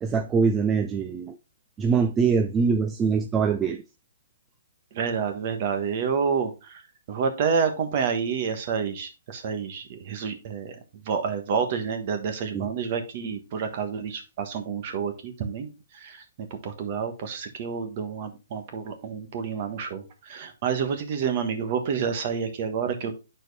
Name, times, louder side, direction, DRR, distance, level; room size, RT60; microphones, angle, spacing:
voice 1, 0.0-1.4 1.8-3.8 12.5-12.7, right 5 dB, 10° right, 0.4 m, -23 dB
voice 2, 4.9-6.8 7.1-10.7 11.0-23.1, right 6 dB, 35° right, 1.3 m, -29 dB
9.1 x 4.4 x 3.3 m
hypercardioid pair, 170°, 0 cm